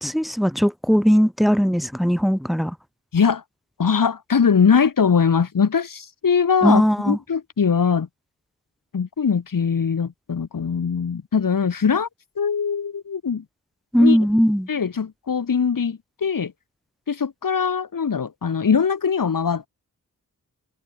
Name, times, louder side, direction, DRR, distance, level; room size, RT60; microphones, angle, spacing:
voice 1, 0.0-2.7 6.6-7.2 13.9-14.7, equal, ahead, 2.5 m, -19 dB
voice 2, 3.1-3.4 3.8-8.1 8.9-12.1 12.4-13.4 14.0-14.2 14.7-16.5 17.1-19.7, left 6 dB, 80° left, 6.6 m, -21 dB
wide cardioid pair, 80°, 33 cm